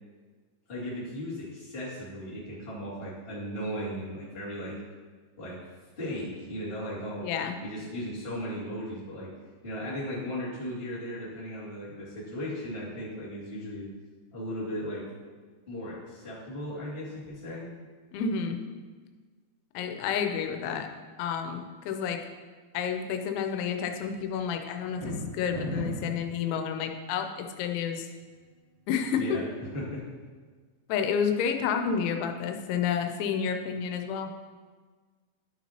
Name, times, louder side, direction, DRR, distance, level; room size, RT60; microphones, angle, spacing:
voice 1, 0.7-4.8 5.4-5.6 6.0-7.2 7.6-9.3 9.6-13.9 14.3-15.1 15.7-17.7 29.2-29.4 29.7-30.0, equal, 25° left, -9 dB, 1.2 m, -36 dB
voice 2, 7.2-7.6 18.1-18.6 19.7-20.9 21.2-22.2 22.7-28.1 28.9-29.4 30.9-34.3, left 7 dB, 90° left, 5 dB, 3.0 m, -30 dB
sound 1, 24.8-26.1, right 1 dB, 85° right, 4.9 m, -34 dB
12.0 x 6.0 x 2.9 m, 1.5 s
omnidirectional pair, 5.3 m